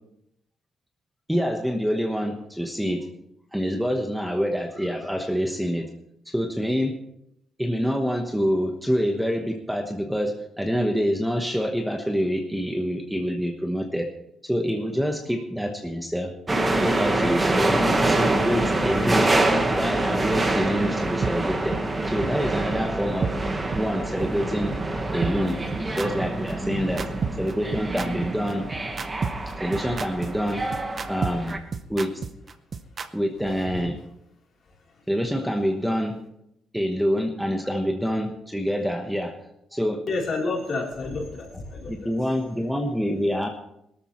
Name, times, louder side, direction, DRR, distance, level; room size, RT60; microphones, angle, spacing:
voice 1, 1.3-3.1 3.5-5.9 6.2-7.0 7.6-14.1 14.4-16.3 16.7-19.3 19.7-21.8 22.1-23.4 23.7-24.8 25.1-25.6 25.9-27.1 27.4-28.7 29.5-30.7 31.1-31.6 31.9-32.1 33.1-34.0 35.1-36.2 36.7-39.4 39.7-40.0 41.9-43.5, equal, ahead, 3 dB, 1.1 m, -26 dB
sound 1, 16.5-31.6, right 2 dB, 20° right, 1.4 m, -26 dB
sound 2, 21.2-21.3 21.7-21.8 22.2-22.3 22.7-22.8 23.2-23.3 23.7-23.8 24.2-24.3 24.7-24.8 25.2-33.1, right 5 dB, 35° right, 0.8 m, -30 dB
voice 2, 40.1-42.1, left 3 dB, 45° left, -2 dB, 3.6 m, -30 dB
21.5 x 13.0 x 3.1 m, 0.79 s
cardioid pair, 160°, 0 cm